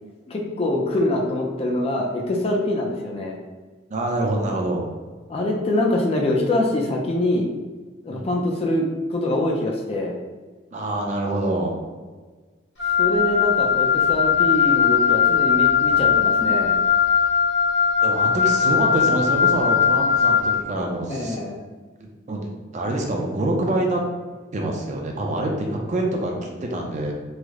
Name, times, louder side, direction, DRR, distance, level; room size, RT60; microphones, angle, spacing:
voice 1, 0.3-3.4 5.3-7.5 8.0-10.2 13.0-16.7 21.1-21.6, left 1 dB, 35° left, 0 dB, 0.4 m, -24 dB
voice 2, 3.9-4.8 8.1-8.4 10.7-11.9 18.0-21.4 22.3-22.5 22.7-24.0 24.5-27.1, right 1 dB, 40° right, 1 dB, 0.4 m, -25 dB
Wind instrument woodwind instrument, 12.8-20.6, left 7 dB, 65° left, 0.9 m, -19 dB
3.2 x 2.0 x 3.5 m, 1.4 s
head